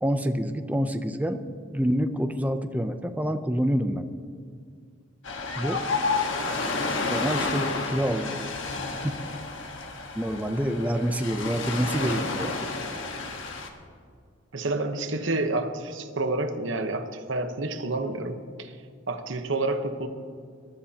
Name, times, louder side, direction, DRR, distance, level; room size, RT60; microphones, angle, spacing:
voice 1, 0.0-1.4 1.7-4.0 5.6-5.8 7.1-8.5 10.2-12.5, equal, 10° right, 7 dB, 0.5 m, -27 dB
Ocean, 5.2-13.7, left 3 dB, 70° left, 1.4 m, -30 dB
voice 2, 14.5-18.8 19.1-20.1, right 2 dB, 65° right, 7 dB, 1.0 m, -29 dB
22.0 x 13.0 x 2.9 m, 2.2 s
head